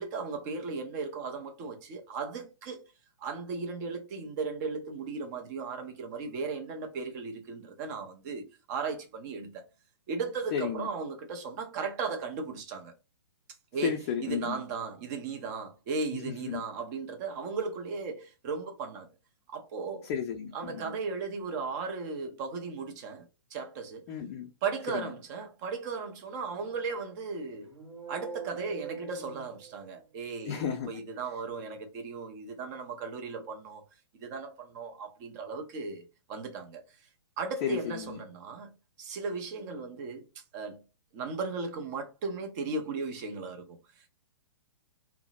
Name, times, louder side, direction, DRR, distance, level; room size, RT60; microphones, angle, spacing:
voice 1, 0.0-2.8 3.2-9.7 10.1-12.9 13.7-19.1 19.5-20.1 20.5-24.1 24.6-27.7 28.1-33.8 34.1-36.8 37.4-38.7 39.0-40.8 41.1-44.1, right 4 dB, 35° right, 0.7 m, -36 dB
voice 2, 10.5-10.9 13.8-14.6 16.1-16.6 20.0-20.9 24.1-24.5 24.9-25.1 30.5-30.9 37.6-38.2, left 8 dB, 30° left, 0.3 m, -33 dB
sound 1, 27.6-30.2, right 5 dB, 65° right, 1.2 m, -43 dB
2.7 x 2.1 x 2.5 m
figure-of-eight pair, 120°, 15 cm